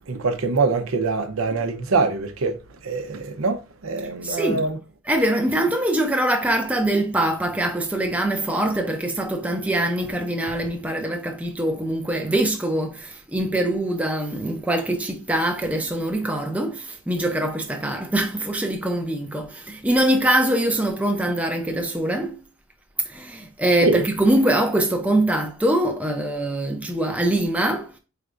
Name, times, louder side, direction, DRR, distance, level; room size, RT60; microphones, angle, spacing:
voice 1, 0.1-2.6 2.8-4.8 23.8-24.0, right 3 dB, 85° right, 0.7 m, -24 dB
voice 2, 4.2-4.7 5.0-22.4 23.1-27.9, right 1 dB, 5° right, 0.5 m, -23 dB
4.7 x 3.4 x 2.5 m
head